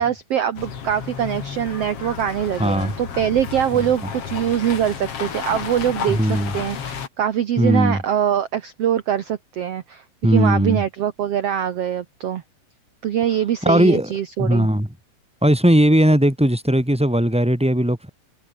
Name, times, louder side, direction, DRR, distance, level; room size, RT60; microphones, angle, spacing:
voice 1, 0.0-6.2 6.5-10.0 10.3-12.4 13.0-14.7, right 10 dB, 65° right, 1.6 m, -23 dB
sound 1, 0.5-7.1, left 7 dB, 45° left, 2.9 m, -32 dB
voice 2, 2.6-2.9 3.7-3.8 6.1-6.5 7.6-8.0 10.2-10.8 13.6-14.1 14.4-14.9 15.4-18.1, equal, ahead, 2.1 m, -18 dB
omnidirectional pair, 4.1 m